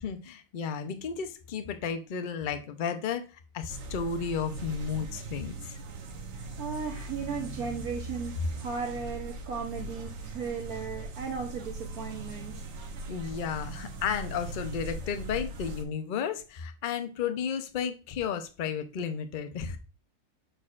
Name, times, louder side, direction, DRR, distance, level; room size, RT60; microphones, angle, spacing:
voice 1, 0.0-3.2 3.5-5.8 13.1-19.8, left 7 dB, 55° left, 8 dB, 0.5 m, -33 dB
sound 1, 3.7-15.8, right 2 dB, 55° right, 1.0 m, -40 dB
voice 2, 6.3-12.5, right 5 dB, 70° right, 2 dB, 1.3 m, -36 dB
6.4 x 6.4 x 2.4 m, 0.32 s
omnidirectional pair, 1.7 m